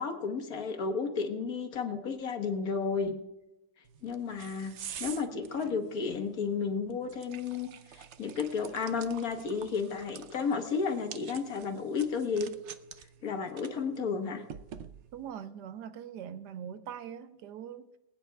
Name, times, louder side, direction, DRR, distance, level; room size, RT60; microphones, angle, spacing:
voice 1, 0.0-3.1 4.0-12.5 13.2-14.4, left 5 dB, 60° left, 1.5 m, -32 dB
sound 1, 3.9-15.3, right 8 dB, 65° right, 0.7 m, -48 dB
voice 2, 15.1-17.9, right 9 dB, 80° right, 1.3 m, -42 dB
25.0 x 9.0 x 2.3 m
omnidirectional pair, 1.8 m